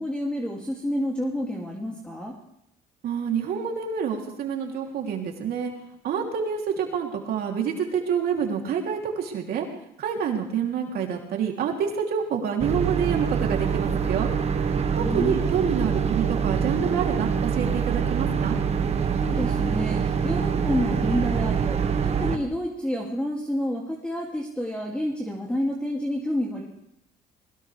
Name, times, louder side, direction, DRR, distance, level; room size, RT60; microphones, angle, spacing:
voice 1, 0.0-2.3 15.0-15.4 19.2-26.6, equal, 5° left, -2 dB, 2.6 m, -29 dB
voice 2, 3.0-5.7 6.0-9.6 10.0-14.3 15.1-18.6, right 7 dB, 65° right, 1 dB, 3.2 m, -27 dB
sound 1, 12.6-22.4, right 6 dB, 40° right, 1.4 m, -25 dB
21.0 x 18.5 x 3.4 m, 0.77 s
cardioid pair, 110°, 17 cm